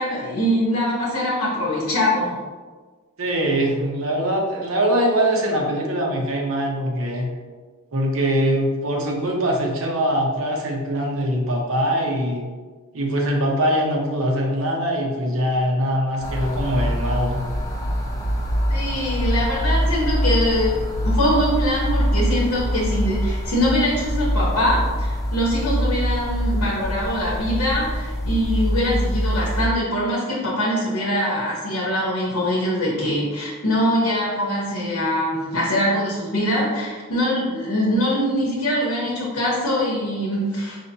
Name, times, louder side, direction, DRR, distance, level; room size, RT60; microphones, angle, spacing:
voice 1, 0.0-2.4 18.7-40.8, equal, 80° left, -5 dB, 0.9 m, -23 dB
voice 2, 3.2-7.3 7.9-12.5 12.9-17.4, equal, 70° right, 0 dB, 0.8 m, -22 dB
sound 1, 16.2-29.7, equal, 15° left, 0.4 m, -24 dB
4.9 x 2.8 x 2.7 m, 1.4 s
head